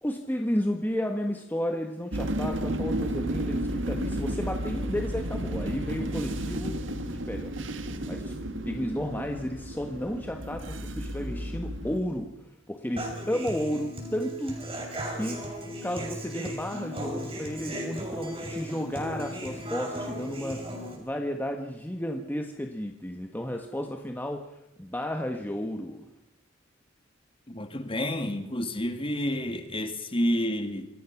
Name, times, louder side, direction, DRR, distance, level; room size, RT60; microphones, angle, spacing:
voice 1, 0.0-6.8 7.3-7.5 8.1-8.4 8.7-12.3 12.7-14.5 15.1-15.4 15.8-20.7 21.0-26.1, equal, 10° left, 4 dB, 1.4 m, -32 dB
sound 1, 2.1-12.0, right 1 dB, 70° right, 1.8 m, -32 dB
Human voice / Acoustic guitar, 13.0-20.9, equal, 30° right, 6.1 m, -36 dB
voice 2, 27.5-30.9, equal, 30° left, 7 dB, 2.2 m, -29 dB
27.5 x 20.5 x 6.0 m, 0.86 s
head